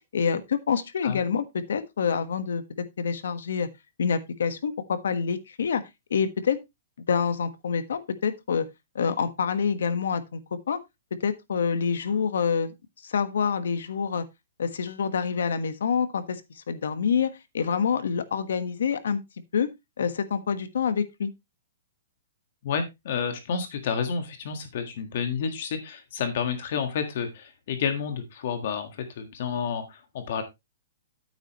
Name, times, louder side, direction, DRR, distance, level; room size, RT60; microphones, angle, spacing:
voice 1, 0.1-2.6 3.0-3.7 4.0-5.8 6.1-6.6 7.1-8.7 8.9-10.4 10.7-10.8 11.2-12.7 13.0-14.2 14.6-19.2 19.5-19.7 20.0-21.3, left 6 dB, 75° left, 1.3 m, -27 dB
voice 2, 22.6-30.4, left 6 dB, 40° left, 1.6 m, -30 dB
9.5 x 8.9 x 3.0 m
hypercardioid pair, 180°, 0 cm